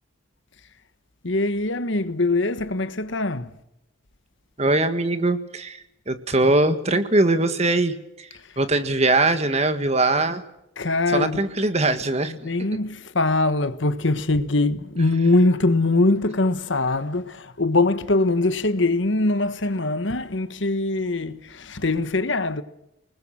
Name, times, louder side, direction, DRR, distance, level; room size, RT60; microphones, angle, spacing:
voice 1, 1.2-3.5 10.8-11.4 12.3-22.6, left 2 dB, 65° left, 1.4 m, -22 dB
voice 2, 4.6-5.8 6.1-8.3 8.6-10.4 11.1-12.5, right 2 dB, 35° right, 1.7 m, -21 dB
29.0 x 20.0 x 6.0 m
head